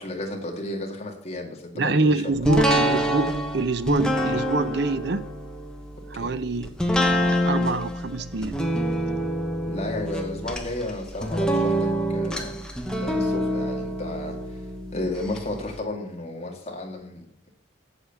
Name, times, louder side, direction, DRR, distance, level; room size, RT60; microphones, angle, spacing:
voice 1, 0.0-2.4 6.1-6.3 9.6-12.6 13.0-14.4 14.9-17.3, left 2 dB, 35° left, 1 dB, 1.9 m, -33 dB
voice 2, 1.7-3.3 3.5-5.3 6.1-6.7 7.3-8.5, right 3 dB, 55° right, 13 dB, 0.7 m, -25 dB
sound 1, 2.4-15.4 15.8-15.9, equal, 5° left, 1.1 m, -26 dB
8.1 x 7.5 x 6.9 m, 0.68 s
head